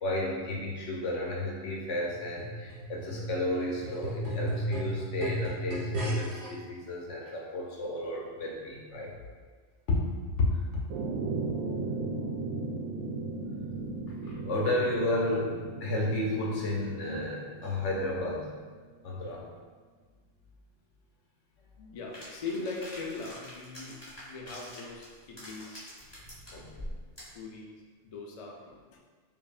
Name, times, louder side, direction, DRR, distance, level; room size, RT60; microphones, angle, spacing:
voice 1, 0.0-9.1 9.9-10.1 10.4-10.8 14.1-18.5 19.0-19.4 26.5-26.9, left 2 dB, 70° left, -2 dB, 1.1 m, -32 dB
sound 1, 2.1-6.5 7.3-7.4, right 1 dB, 45° right, 1.1 m, -34 dB
sound 2, 10.9-18.7, right 3 dB, 75° right, 1.0 m, -36 dB
voice 2, 21.6-26.1 27.3-29.0, left 3 dB, 55° left, -1 dB, 0.4 m, -41 dB
sound 3, 22.1-27.4, equal, 20° left, 1.2 m, -45 dB
5.3 x 2.6 x 2.4 m, 1.5 s
omnidirectional pair, 1.3 m